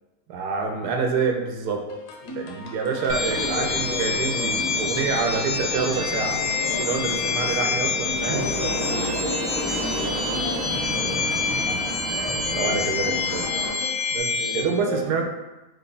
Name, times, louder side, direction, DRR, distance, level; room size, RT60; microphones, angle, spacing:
voice 1, 0.3-1.8 2.3-6.4 6.8-8.5 12.5-13.5 14.1-15.3, right 5 dB, 85° right, 2 dB, 1.1 m, -27 dB
sound 1, 1.9-14.2, left 2 dB, 85° left, 1.2 m, -39 dB
sound 2, 3.0-13.7, equal, ahead, 0.6 m, -32 dB
sound 3, 3.1-14.6, left 5 dB, 65° left, 0.6 m, -27 dB
voice 2, 8.2-11.2 12.3-13.1 13.6-13.8 14.4-15.1, equal, 35° right, -8 dB, 0.4 m, -34 dB
3.2 x 2.3 x 3.8 m, 1.1 s
omnidirectional pair, 1.7 m